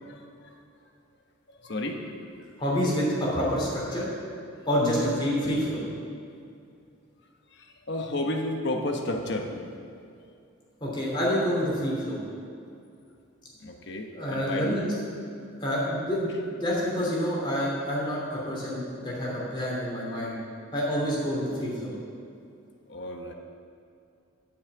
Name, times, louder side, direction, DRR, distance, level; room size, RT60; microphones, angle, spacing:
voice 1, 0.0-0.5 1.5-2.0 4.8-5.1 7.9-9.7 13.6-14.8 22.9-23.3, left 1 dB, 55° left, 3 dB, 1.1 m, -32 dB
voice 2, 2.6-4.1 4.7-5.8 10.8-12.2 14.1-14.9 15.6-20.3 20.7-21.9, equal, 25° left, -6 dB, 2.8 m, -28 dB
9.5 x 5.7 x 8.4 m, 2.4 s
head